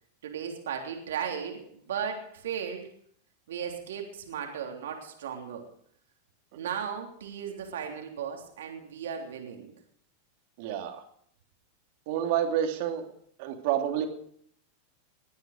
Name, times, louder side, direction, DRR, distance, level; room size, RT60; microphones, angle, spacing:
voice 1, 0.2-2.9 3.5-5.7 6.5-9.7, right 7 dB, 80° right, 2 dB, 3.3 m, -36 dB
voice 2, 10.6-11.0 12.1-13.0 13.4-14.1, right 10 dB, 60° right, 4 dB, 2.8 m, -28 dB
21.0 x 9.7 x 5.0 m, 0.66 s
hypercardioid pair, 105°, 0 cm